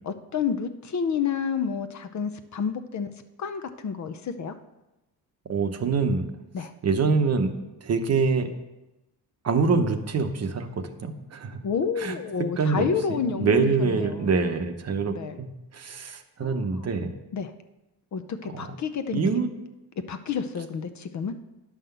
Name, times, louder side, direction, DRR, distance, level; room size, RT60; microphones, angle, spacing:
voice 1, 0.0-3.1 3.4-4.6 6.5-6.7 11.6-14.3 15.1-15.4 16.4-16.9 17.3-17.5 18.1-19.2 20.1-21.3, left 6 dB, 45° left, 9 dB, 0.6 m, -29 dB
voice 2, 5.5-6.3 6.8-7.5 7.8-8.5 9.4-11.6 12.0-12.1 12.6-17.1 18.5-18.6 19.1-19.5, right 4 dB, 40° right, 7 dB, 0.8 m, -25 dB
10.0 x 5.8 x 6.8 m, 0.99 s
cardioid pair, 145°, 41 cm